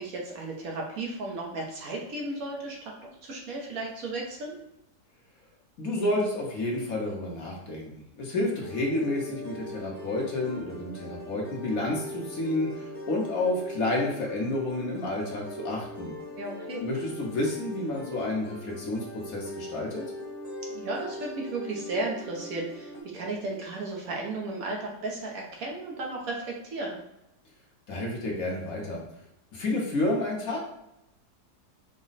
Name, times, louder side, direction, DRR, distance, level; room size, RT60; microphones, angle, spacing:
voice 1, 0.0-4.6 16.3-16.8 20.7-27.0, right 2 dB, 60° right, -1 dB, 1.2 m, -34 dB
voice 2, 5.8-16.1 16.8-20.0 27.9-29.0 29.5-30.6, left 2 dB, 60° left, -2 dB, 1.3 m, -30 dB
sound 1, 8.6-23.0, equal, 20° right, 1.1 m, -41 dB
5.1 x 2.2 x 4.0 m, 0.83 s
omnidirectional pair, 1.8 m